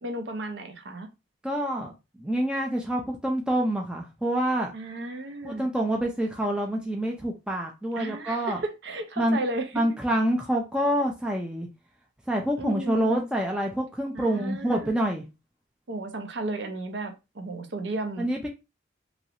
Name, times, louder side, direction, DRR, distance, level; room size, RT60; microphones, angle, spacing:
voice 1, 0.0-1.1 4.7-5.7 8.0-9.7 12.6-13.3 14.1-14.9 15.9-18.3, right 2 dB, 65° right, 0.6 m, -34 dB
voice 2, 1.4-1.9 2.2-4.7 5.4-8.6 9.2-9.4 9.7-11.7 12.3-15.2 18.2-18.5, right 1 dB, 5° right, 0.3 m, -27 dB
3.0 x 2.5 x 2.8 m
head